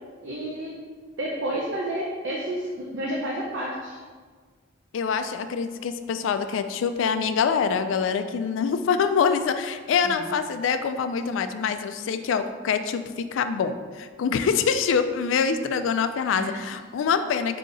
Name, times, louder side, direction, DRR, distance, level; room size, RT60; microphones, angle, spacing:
voice 1, 0.2-0.7 1.2-4.0 10.0-10.2 16.3-16.8, right 1 dB, 65° right, -3 dB, 0.6 m, -30 dB
voice 2, 4.9-17.6, left 6 dB, 70° left, 9 dB, 0.3 m, -25 dB
3.9 x 2.8 x 4.8 m, 1.6 s
head